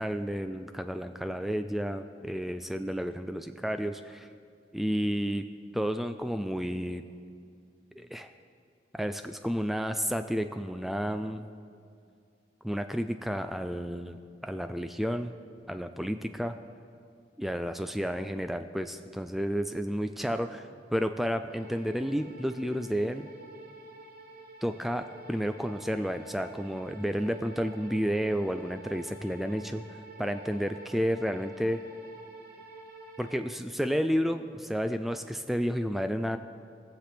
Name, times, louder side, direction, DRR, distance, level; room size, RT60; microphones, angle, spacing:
voice 1, 0.0-4.3 4.7-5.4 5.7-7.0 8.0-8.3 8.9-11.4 12.6-15.3 15.7-16.5 17.4-23.3 24.6-29.8 30.2-31.8 33.2-36.4, equal, ahead, 8 dB, 0.3 m, -31 dB
sound 1, 21.5-33.4, right 3 dB, 55° right, 1.3 m, -49 dB
22.0 x 7.6 x 3.4 m, 2.4 s
head